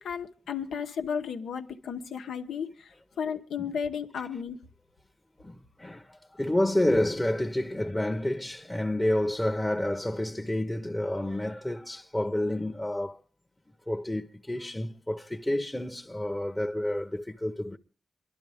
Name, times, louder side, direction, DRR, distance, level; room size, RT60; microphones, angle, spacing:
voice 1, 0.0-4.6, left 7 dB, 85° left, 0.9 m, -34 dB
voice 2, 5.4-13.2 13.9-17.8, left 1 dB, 15° left, 0.9 m, -29 dB
23.0 x 12.0 x 3.5 m
supercardioid pair, 45°, 0 cm